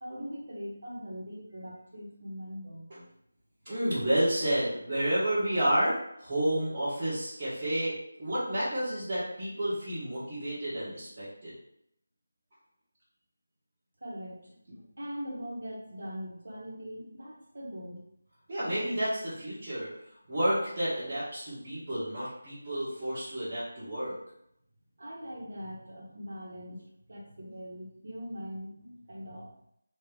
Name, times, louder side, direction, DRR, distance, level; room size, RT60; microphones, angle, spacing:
voice 1, 0.0-3.0 14.0-18.0 25.0-29.7, equal, 65° right, -4 dB, 1.5 m, -41 dB
voice 2, 3.6-11.5 18.5-19.9 20.3-24.2, right 1 dB, 25° right, -15 dB, 1.5 m, -30 dB
3.3 x 3.2 x 3.4 m, 0.74 s
figure-of-eight pair, 175°, 0 cm